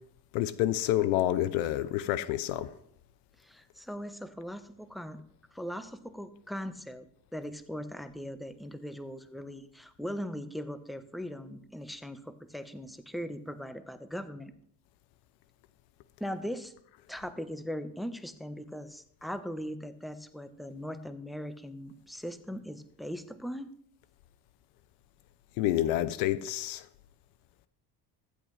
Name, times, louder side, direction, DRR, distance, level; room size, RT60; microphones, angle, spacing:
voice 1, 0.3-2.7 25.6-26.9, left 13 dB, 80° left, 0.7 m, -28 dB
voice 2, 3.4-5.2 5.5-7.1 7.3-14.5 16.2-16.7 17.1-23.7, equal, ahead, 1.0 m, -39 dB
15.0 x 8.3 x 3.3 m
supercardioid pair, 65°, 49 cm